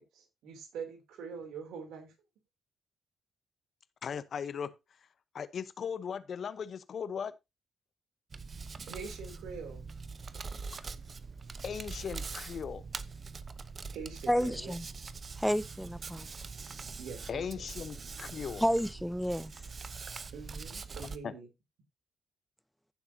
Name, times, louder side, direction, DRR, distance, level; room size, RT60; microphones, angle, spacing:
voice 1, 0.1-2.1 8.9-9.9 10.2-10.3 13.9-14.7 17.0-17.4 20.3-21.5, right 5 dB, 75° right, 3.1 m, -44 dB
voice 2, 4.0-4.8 5.3-7.3 11.6-12.8 17.3-18.7 21.2-21.3, left 7 dB, 60° left, 0.9 m, -38 dB
Hands, 8.3-21.2, right 4 dB, 45° right, 0.9 m, -43 dB
voice 3, 14.3-14.8 15.4-16.3 18.6-19.5, equal, ahead, 0.5 m, -30 dB
15.0 x 7.1 x 2.8 m
hypercardioid pair, 45°, 0 cm